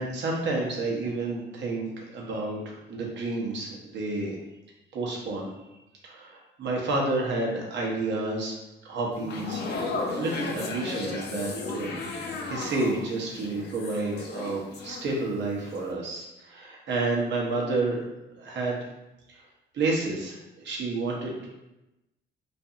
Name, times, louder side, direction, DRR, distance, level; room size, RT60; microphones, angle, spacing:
voice 1, 0.0-4.4 4.9-5.5 6.0-8.6 8.9-9.6 10.2-18.0 18.4-18.8 19.3-19.4 19.7-21.5, right 2 dB, 65° right, -2 dB, 0.8 m, -30 dB
sound 1, 9.1-15.4 15.7-15.9, left 3 dB, 55° left, 0.5 m, -35 dB
2.7 x 2.5 x 2.4 m, 0.95 s
cardioid pair, 90°, 20 cm